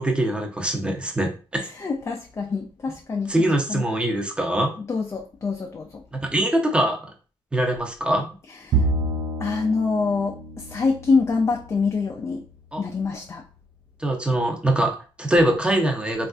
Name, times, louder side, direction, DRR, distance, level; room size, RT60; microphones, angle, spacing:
voice 1, 0.0-1.6 3.3-4.8 6.1-7.1 7.5-8.3 12.7-12.8 14.0-16.3, right 1 dB, 10° right, 2 dB, 0.7 m, -23 dB
voice 2, 1.6-3.3 3.7-3.8 4.8-6.0 8.5-8.9 9.4-12.5 12.8-13.4, left 4 dB, 30° left, 2 dB, 0.4 m, -25 dB
Bowed string instrument, 8.7-12.2, right 3 dB, 55° right, 0.4 m, -28 dB
3.4 x 2.5 x 2.4 m, 0.37 s
cardioid pair, 100°, 10 cm